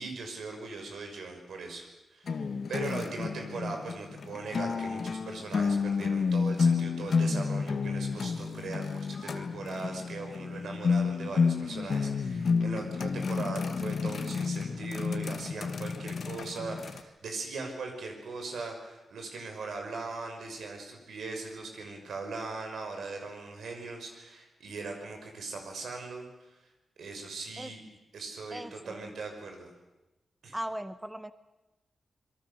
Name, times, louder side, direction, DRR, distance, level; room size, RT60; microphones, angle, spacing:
voice 1, 0.0-26.5 27.0-27.8 28.1-29.7 30.4-30.6, right 3 dB, 80° right, 4 dB, 6.0 m, -40 dB
sound 1, 2.3-17.0, left 5 dB, 55° left, 1.5 m, -30 dB
voice 2, 28.5-29.1 30.5-31.3, right 1 dB, 5° right, 12 dB, 0.8 m, -38 dB
27.0 x 23.0 x 6.9 m, 1.0 s
wide cardioid pair, 145°, 0 cm